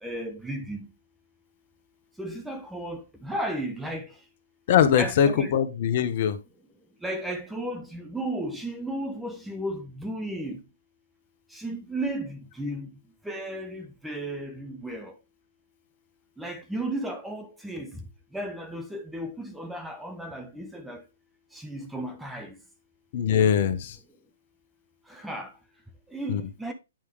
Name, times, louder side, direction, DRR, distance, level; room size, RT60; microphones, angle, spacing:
voice 1, 0.0-0.9 2.2-4.1 5.0-5.5 7.0-10.6 11.5-12.9 13.2-15.1 16.4-18.0 18.3-21.0 21.5-22.6 25.1-25.5 26.1-26.7, right 1 dB, 5° right, 0.9 m, -34 dB
voice 2, 4.7-6.4 23.1-24.0 26.3-26.4, left 8 dB, 50° left, 1.1 m, -22 dB
9.0 x 5.0 x 3.3 m
hypercardioid pair, 135°, 0 cm